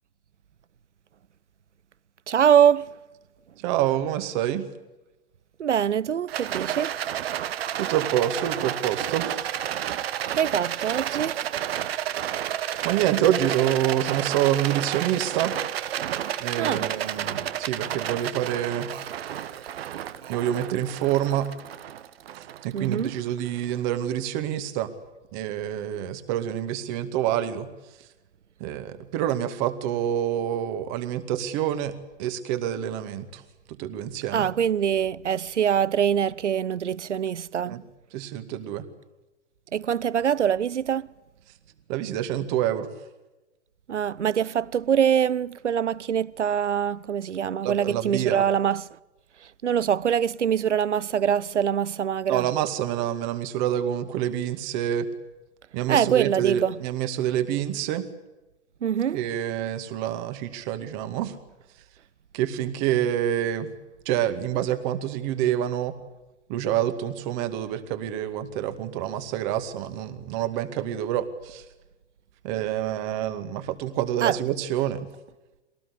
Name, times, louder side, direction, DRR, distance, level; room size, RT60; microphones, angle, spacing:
voice 1, 2.3-3.0 5.6-7.0 10.3-11.4 16.6-16.9 22.7-23.2 34.3-37.8 39.7-41.1 43.9-48.9 49.6-52.5 55.9-56.8 58.8-59.2 74.2-74.4, right 8 dB, 80° right, 0.7 m, -24 dB
voice 2, 3.6-4.7 7.8-9.5 12.8-15.6 16.4-18.9 20.3-21.5 22.6-24.9 25.3-27.7 28.6-33.4 33.7-34.5 37.7-37.8 38.1-38.9 41.9-42.9 47.6-48.4 52.3-55.1 55.7-58.1 59.1-61.4 62.3-63.7 64.1-65.9 66.5-71.6 72.4-75.1, right 11 dB, 40° right, 2.3 m, -27 dB
Rattle, 6.3-23.6, right 11 dB, 60° right, 1.4 m, -31 dB
23.0 x 18.5 x 8.4 m
figure-of-eight pair, 110°, 35 cm